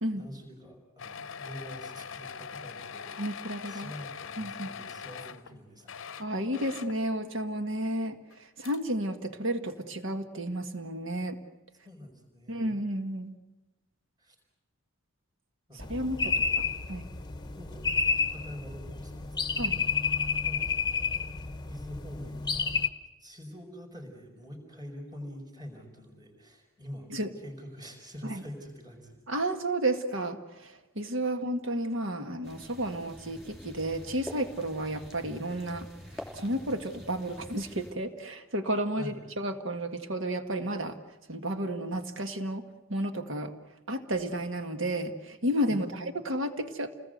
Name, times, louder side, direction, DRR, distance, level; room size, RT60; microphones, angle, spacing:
voice 1, 0.1-3.3 3.7-6.1 11.8-12.7 14.2-14.4 15.7-16.6 17.2-17.3 17.6-19.6 20.5-21.0 21.7-22.8 23.2-27.1 27.4-29.2 39.0-39.2 45.7-46.2, equal, 20° right, 3 dB, 5.0 m, -46 dB
sound 1, 1.0-5.5 5.8-7.0 8.3-8.4 8.6-8.8, left 6 dB, 60° left, 0.8 m, -42 dB
voice 2, 3.2-3.9 4.4-4.7 6.2-11.4 12.5-13.3 15.7-17.1 19.6-19.8 27.1-27.3 28.2-28.4 29.3-35.9 36.1-41.0 41.3-43.5 43.9-47.0, right 1 dB, 60° right, 7 dB, 1.8 m, -32 dB
sound 2, 15.8-22.9, left 5 dB, 20° left, 1.0 m, -30 dB
sound 3, 32.4-37.9, left 1 dB, ahead, 4.1 m, -46 dB
28.5 x 20.0 x 7.9 m, 1.1 s
head